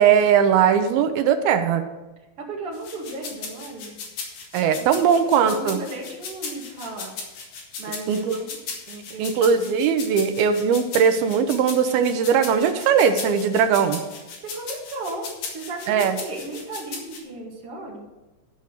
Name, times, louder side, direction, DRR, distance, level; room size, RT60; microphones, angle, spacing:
voice 1, 0.0-1.8 4.5-5.8 8.1-8.4 9.2-14.0 15.9-16.2, right 7 dB, 80° right, 8 dB, 2.5 m, -19 dB
voice 2, 2.4-4.0 4.7-7.2 7.8-8.6 8.9-9.6 11.5-11.7 14.4-18.1, right 2 dB, 45° right, -2 dB, 2.5 m, -35 dB
sound 1, 2.7-17.2, left 5 dB, 70° left, 3.7 m, -36 dB
13.0 x 5.4 x 6.5 m, 1.1 s
omnidirectional pair, 4.5 m